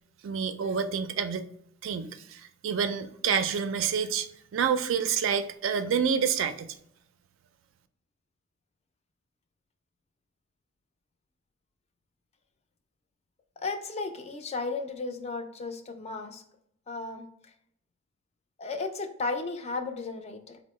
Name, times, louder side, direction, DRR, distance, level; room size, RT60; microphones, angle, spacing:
voice 1, 0.2-1.5 1.8-4.3 4.5-6.7, right 7 dB, 70° right, 10 dB, 0.3 m, -28 dB
voice 2, 13.6-16.4 16.9-17.2 18.6-20.6, left 3 dB, 30° left, 5 dB, 0.4 m, -34 dB
4.4 x 2.1 x 3.0 m, 0.72 s
head